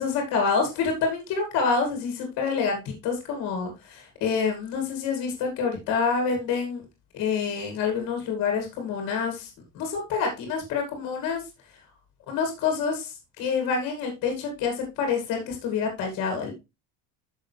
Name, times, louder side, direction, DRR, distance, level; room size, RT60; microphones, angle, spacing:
voice 1, 0.0-6.8 7.1-11.4 12.3-16.5, left 5 dB, 40° left, 3 dB, 2.4 m, -27 dB
9.4 x 6.3 x 3.3 m, 0.25 s
cardioid pair, 170°, 40 cm